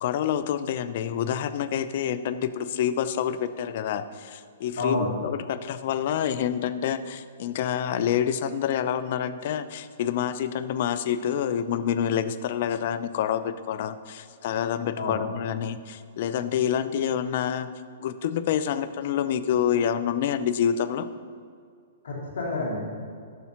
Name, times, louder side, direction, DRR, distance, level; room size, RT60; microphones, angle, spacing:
voice 1, 0.0-17.7 18.0-21.1, left 9 dB, 55° left, 11 dB, 0.6 m, -27 dB
voice 2, 4.8-5.1 15.0-15.2 22.0-22.8, left 2 dB, 75° left, -3 dB, 2.9 m, -28 dB
13.0 x 5.6 x 5.9 m, 2.2 s
hypercardioid pair, 130°, 0 cm